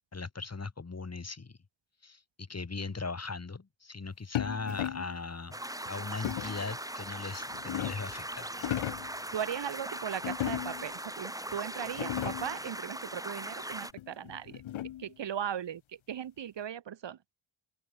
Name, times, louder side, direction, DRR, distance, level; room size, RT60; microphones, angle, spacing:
voice 1, 0.1-1.6 2.0-5.6 5.9-8.5, left 4 dB, 30° left, 1.8 m, -39 dB
sound 1, 4.4-5.2 6.2-6.7 7.3-8.2 8.5-9.2 10.2-10.9 11.5-11.6 11.9-12.6 14.0-15.1, left 12 dB, 70° left, 0.7 m, -36 dB
sound 2, 5.5-13.9, right 1 dB, 5° right, 1.7 m, -40 dB
voice 2, 9.3-14.6 15.0-15.8 16.1-17.2, right 9 dB, 60° right, 1.0 m, -37 dB
open air
cardioid pair, 50°, 50 cm